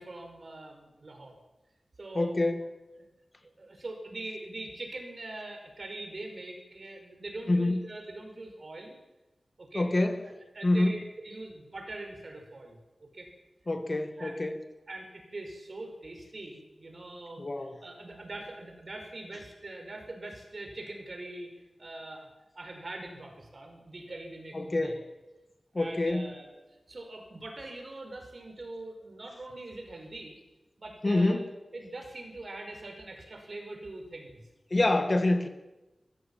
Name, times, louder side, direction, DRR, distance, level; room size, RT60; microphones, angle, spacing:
voice 1, 0.0-1.4 2.0-2.4 3.6-9.0 9.6-9.9 10.5-12.8 13.1-13.3 14.2-14.4 14.9-17.5 17.8-22.3 22.6-25.0 25.7-26.5 26.9-30.4 30.8-31.4 31.7-34.4, right 2 dB, 50° right, 3 dB, 5.3 m, -42 dB
voice 2, 2.2-2.7 7.5-7.9 9.7-10.2 10.6-11.0 13.7-14.6 17.4-17.8 24.5-25.0 25.7-26.3 31.0-31.5 34.7-35.5, left 2 dB, 35° left, 8 dB, 1.9 m, -26 dB
24.0 x 15.0 x 7.4 m, 1.0 s
wide cardioid pair, 100°, 0 cm